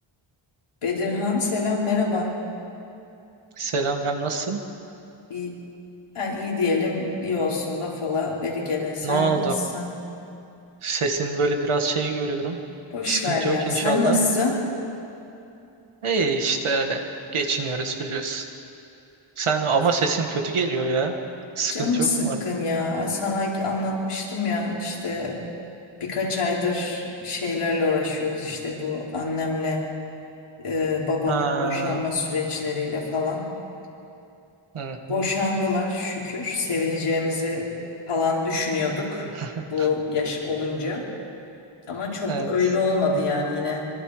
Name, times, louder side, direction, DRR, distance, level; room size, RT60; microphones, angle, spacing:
voice 1, 0.8-2.3 5.3-5.6 6.1-9.9 12.9-14.7 21.7-25.4 26.0-29.9 30.6-33.5 35.1-37.7 38.1-39.3 39.7-41.1 41.9-43.9, left 3 dB, 90° left, -4 dB, 4.6 m, -26 dB
voice 2, 3.6-4.6 9.0-9.5 10.8-12.6 13.1-14.2 16.0-17.0 17.3-18.4 19.4-21.2 21.6-22.4 31.3-32.0 34.7-35.3 39.3-39.9 42.3-42.5, right 4 dB, 80° right, 4 dB, 2.1 m, -25 dB
25.0 x 25.0 x 5.1 m, 2.7 s
wide cardioid pair, 130°, 49 cm